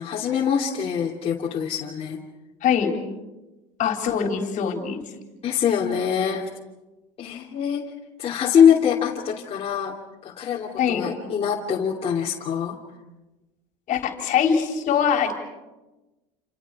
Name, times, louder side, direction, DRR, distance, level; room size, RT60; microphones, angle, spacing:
voice 1, 0.0-2.2 3.8-3.9 5.4-6.5 7.2-7.9 8.2-9.9 10.2-12.8, left 8 dB, 40° left, -3 dB, 3.0 m, -23 dB
voice 2, 2.6-2.9 3.8-5.0 10.8-11.1 13.9-15.4, left 7 dB, 55° left, 4 dB, 3.9 m, -23 dB
29.0 x 29.0 x 4.9 m, 1.1 s
supercardioid pair, 95°, 16 cm